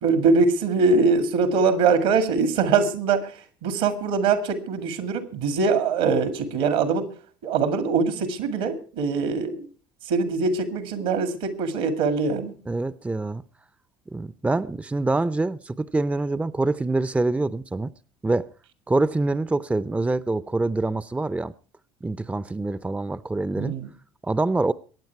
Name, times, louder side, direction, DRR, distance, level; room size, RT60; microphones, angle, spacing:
voice 1, 0.0-7.1 7.4-9.7 10.1-12.6 23.6-23.9, right 4 dB, 75° right, 2.1 m, -23 dB
voice 2, 12.7-13.4 14.1-17.9 18.2-18.5 18.9-21.5 22.0-23.8 24.2-24.7, right 2 dB, 10° right, 0.6 m, -25 dB
22.5 x 9.2 x 4.6 m
hypercardioid pair, 60°, 11 cm